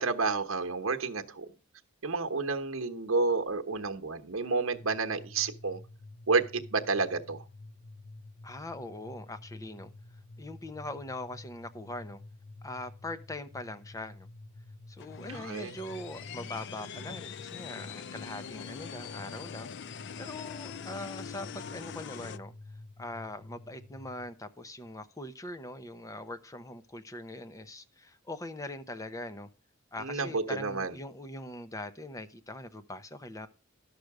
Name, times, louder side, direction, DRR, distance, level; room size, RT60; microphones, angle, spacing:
voice 1, 0.0-1.5 2.0-5.8 6.3-7.4 15.3-15.7 30.0-30.9, right 4 dB, 75° right, 1.1 m, -30 dB
sound 1, 4.7-24.3, left 2 dB, 85° left, 1.0 m, -50 dB
voice 2, 8.4-9.9 10.4-12.2 12.6-14.3 14.9-19.7 20.2-22.5 23.0-29.5 29.9-33.5, left 1 dB, 15° left, 0.8 m, -42 dB
sound 2, 15.0-22.4, left 7 dB, 55° left, 0.4 m, -43 dB
12.0 x 6.6 x 4.8 m
head